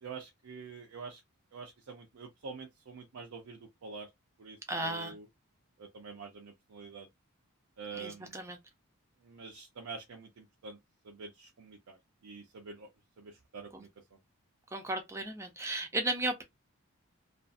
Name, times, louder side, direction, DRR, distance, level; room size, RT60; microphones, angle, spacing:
voice 1, 0.0-1.2 1.5-4.1 4.4-5.3 5.8-7.1 7.8-8.4 9.2-10.8 11.0-12.9 13.2-13.9, right 4 dB, 80° right, 0.5 m, -46 dB
voice 2, 4.7-5.1 7.9-8.6 13.7-13.8 14.7-16.4, right 2 dB, 15° right, 0.5 m, -35 dB
2.5 x 2.4 x 2.4 m
head